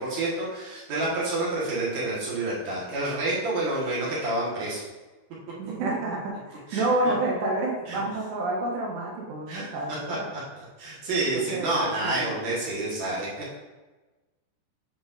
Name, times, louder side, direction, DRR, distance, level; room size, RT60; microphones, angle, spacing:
voice 1, 0.0-4.8 6.7-7.1 7.9-8.0 9.5-9.6 9.9-10.4 10.8-13.6, right 2 dB, 55° right, -7 dB, 2.2 m, -29 dB
voice 2, 5.6-10.3 11.3-12.4, right 2 dB, 80° right, -3 dB, 3.2 m, -29 dB
8.6 x 5.2 x 2.6 m, 1.2 s
omnidirectional pair, 5.1 m